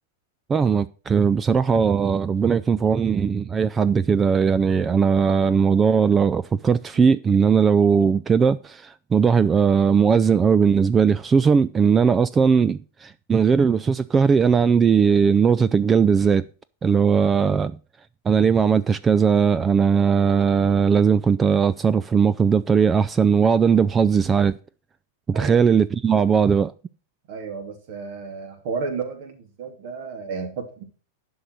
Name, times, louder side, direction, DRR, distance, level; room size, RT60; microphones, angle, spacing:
voice 1, 0.5-16.4 16.8-17.7 18.3-24.5 25.3-26.7, right 6 dB, 20° right, 0.4 m, -19 dB
voice 2, 27.3-30.8, right 5 dB, 55° right, 2.8 m, -32 dB
11.0 x 5.5 x 6.2 m
hypercardioid pair, 100°, 0 cm